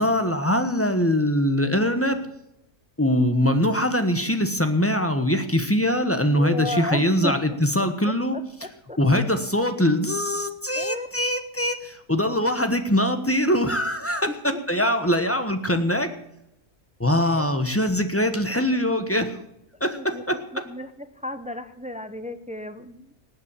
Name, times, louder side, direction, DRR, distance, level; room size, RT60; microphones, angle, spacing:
voice 1, 0.0-2.2 3.0-8.4 9.0-16.1 17.0-19.4 19.8-20.4, left 1 dB, 10° left, 7 dB, 1.1 m, -22 dB
voice 2, 6.3-7.3 8.3-9.0 10.7-11.1 12.4-12.5 14.5-14.6 17.2-17.5 19.9-23.1, left 1 dB, 10° right, 10 dB, 0.5 m, -34 dB
18.5 x 8.1 x 7.3 m, 0.84 s
omnidirectional pair, 1.6 m